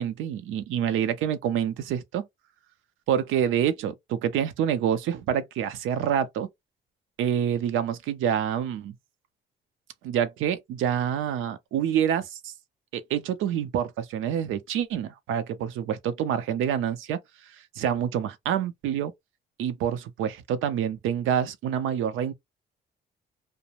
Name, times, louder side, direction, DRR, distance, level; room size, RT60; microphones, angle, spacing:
voice 1, 0.0-2.3 3.1-6.5 7.2-9.0 10.0-12.5 12.9-17.2 17.8-19.1 19.6-22.3, right 9 dB, 85° right, 0.5 m, -27 dB
2.5 x 2.0 x 2.8 m
cardioid pair, 90°, 20 cm